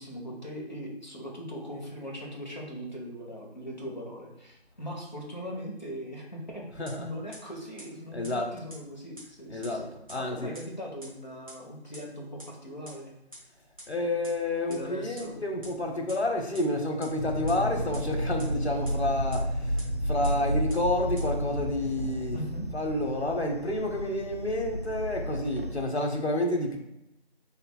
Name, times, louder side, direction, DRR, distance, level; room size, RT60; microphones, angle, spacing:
voice 1, 0.0-6.6 7.0-9.9 10.1-13.1 14.7-15.4 22.3-22.7, equal, 45° left, -2 dB, 1.1 m, -40 dB
voice 2, 6.7-7.1 8.1-8.6 9.5-10.5 13.9-22.5 22.7-26.8, left 1 dB, 75° left, 2 dB, 1.1 m, -30 dB
sound 1, 6.9-7.0 7.3-7.4 7.8-7.9 8.2-8.3 8.7-8.8 9.2-9.3 9.6-9.7 10.1-10.2 10.5-10.6 11.0-11.1 11.5-11.6 11.9-12.0 12.4-12.5 12.9-13.0 13.3-13.4 13.8-13.9 14.2-14.3 14.7-14.8 15.2-15.3 15.6-15.7 16.1-16.2 16.5-16.6 17.0-17.1 17.5-17.6 17.9-18.0 18.4-18.5 18.9-19.0 19.3-19.4 19.8-19.9 20.2-20.3 20.7-20.8 21.2-21.3, right 1 dB, 30° right, 1.2 m, -44 dB
sound 2, 17.2-25.8, equal, 50° right, 0.8 m, -32 dB
5.5 x 3.6 x 2.2 m, 0.86 s
figure-of-eight pair, 175°, 33 cm